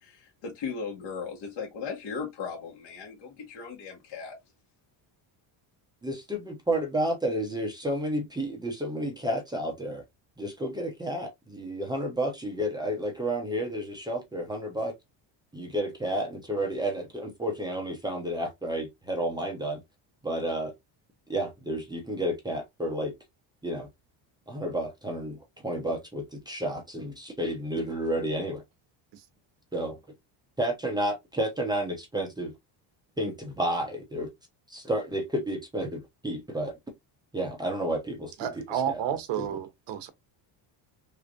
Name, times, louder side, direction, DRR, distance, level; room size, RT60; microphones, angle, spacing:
voice 1, 0.0-4.4, left 5 dB, 65° left, 1.4 m, -37 dB
voice 2, 6.0-10.0 10.4-14.9 15.5-19.8 20.2-20.7 21.3-23.1 23.6-23.9 24.5-28.6 29.7-30.0 30.6-32.5 33.2-34.3 34.7-36.8 37.3-38.5 38.9-39.0 39.4-39.5, right 1 dB, 10° right, 0.7 m, -31 dB
voice 3, 38.4-40.1, right 9 dB, 60° right, 0.9 m, -31 dB
3.5 x 3.2 x 2.4 m
cardioid pair, 165°, 48 cm